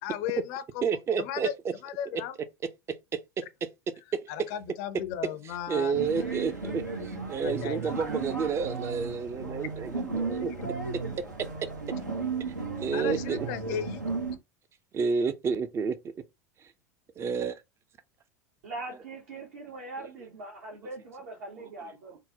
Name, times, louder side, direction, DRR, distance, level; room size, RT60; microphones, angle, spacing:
voice 1, 0.0-1.5 1.8-2.4 4.3-6.3 7.4-8.0 10.6-10.7 12.9-14.0, left 10 dB, 55° left, 0.5 m, -36 dB
voice 2, 0.8-1.7 3.1-3.4 4.1-4.2 5.7-10.5 12.8-13.4 13.7-13.8 14.9-16.0 17.2-17.6, right 6 dB, 30° right, 0.5 m, -30 dB
sound 1, 5.9-14.4, right 4 dB, 90° right, 0.8 m, -34 dB
voice 3, 18.6-22.2, right 2 dB, 65° right, 1.0 m, -41 dB
3.6 x 2.1 x 2.8 m
figure-of-eight pair, 80°, 9 cm